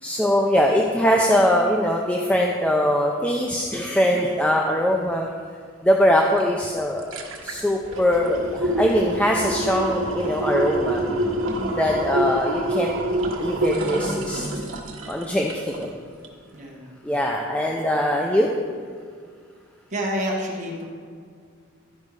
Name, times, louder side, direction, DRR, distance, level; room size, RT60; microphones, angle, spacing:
voice 1, 0.0-5.3 5.8-7.0 7.4-11.0 11.8-12.9 13.4-14.4 15.1-15.9 17.0-18.5, equal, 5° left, 0 dB, 0.5 m, -21 dB
sound 1, 6.4-6.5 6.8-15.9 16.2-16.3, right 1 dB, 75° right, 1.3 m, -26 dB
voice 2, 16.5-17.0 19.9-20.8, equal, 35° right, -2 dB, 1.3 m, -28 dB
13.0 x 5.3 x 4.8 m, 2.1 s
head